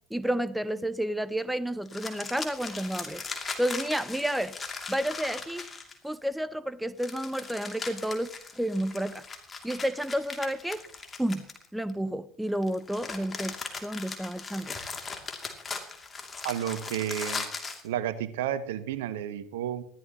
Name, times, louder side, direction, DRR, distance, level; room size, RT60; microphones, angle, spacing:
voice 1, 0.1-3.2 3.6-4.6 4.9-5.7 6.0-8.3 8.6-9.2 9.6-10.8 11.2-11.4 11.7-14.8, right 1 dB, 5° right, 16 dB, 0.7 m, -30 dB
sound 1, 1.9-6.1 7.0-11.9 12.6-17.9, left 4 dB, 25° left, 2.7 m, -39 dB
voice 2, 16.4-17.5 17.8-19.8, right 10 dB, 65° right, 14 dB, 1.0 m, -31 dB
20.5 x 14.5 x 3.0 m, 0.65 s
figure-of-eight pair, 70°, 0 cm